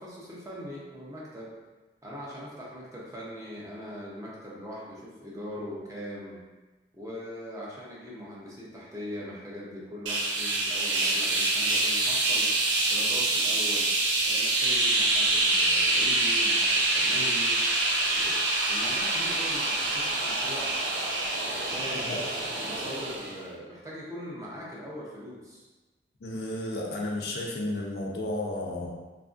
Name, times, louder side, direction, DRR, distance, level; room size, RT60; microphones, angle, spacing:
voice 1, 0.0-1.5 2.0-6.4 6.9-12.5 12.9-13.9 14.2-17.6 18.1-18.4 18.7-20.7 21.5-22.1 22.6-25.7, equal, 20° right, -5 dB, 0.5 m, -41 dB
sound 1, 10.1-23.4, right 2 dB, 85° right, 0.5 m, -26 dB
voice 2, 26.2-28.9, left 1 dB, 65° left, -1 dB, 0.4 m, -32 dB
2.8 x 2.4 x 2.4 m, 1.2 s
head